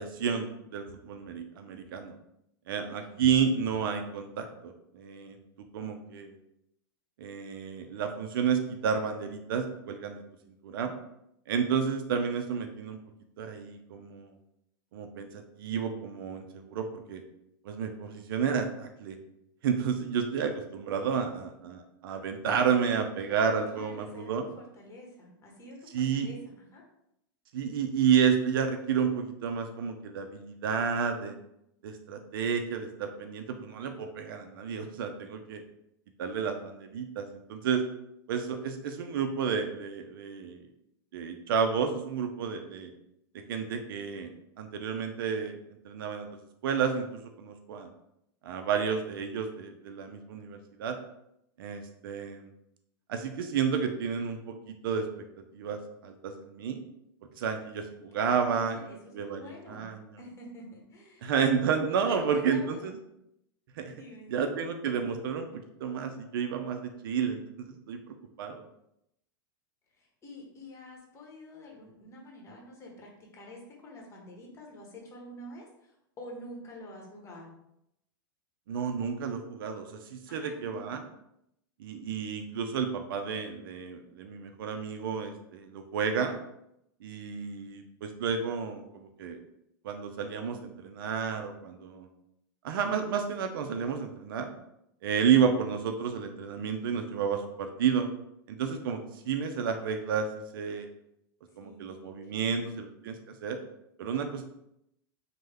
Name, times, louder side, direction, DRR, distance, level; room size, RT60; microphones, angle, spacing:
voice 1, 0.0-2.1 2.7-5.4 5.7-6.4 7.2-10.2 10.6-10.9 11.5-13.0 13.4-14.3 14.9-17.2 17.6-19.2 19.6-24.4 25.9-26.3 27.5-31.4 31.8-35.6 36.2-37.2 37.5-37.8 38.3-40.6 41.1-42.9 43.5-44.3 44.6-45.6 45.8-46.3 46.6-47.1 47.4-47.9 48.4-50.9 51.6-52.5 53.1-55.0 55.5-56.8 57.4-58.8 59.1-60.1 61.2-62.9 63.8-63.9 64.3-68.0 68.4-68.6 78.7-81.0 81.8-86.4 87.0-89.4 89.8-92.1 92.6-94.5 95.0-98.1 98.5-99.0 99.3-100.3 100.5-100.9 101.6-103.1 103.4-103.6 104.0-104.4, right 6 dB, 75° right, 6 dB, 0.4 m, -31 dB
voice 2, 2.8-3.3 21.1-21.6 23.7-26.8 57.8-61.3 62.1-62.9 63.9-64.4 69.9-77.6 80.3-80.9 101.5-102.7, left 1 dB, 25° left, -1 dB, 1.0 m, -48 dB
3.1 x 2.1 x 3.4 m, 0.80 s
hypercardioid pair, 115°, 12 cm